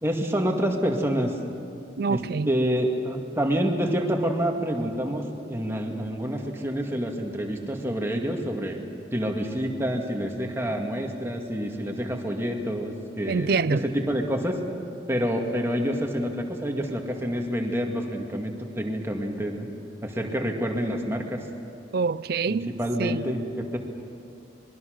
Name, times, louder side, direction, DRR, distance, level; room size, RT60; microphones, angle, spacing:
voice 1, 0.0-1.4 2.1-8.8 9.1-14.6 15.1-19.7 20.0-21.4 22.5-23.8, equal, 15° right, 2.0 m, -27 dB
voice 2, 2.0-2.5 13.3-13.8 21.9-22.7 23.0-23.2, right 4 dB, 55° right, 0.4 m, -25 dB
26.0 x 21.5 x 6.5 m
head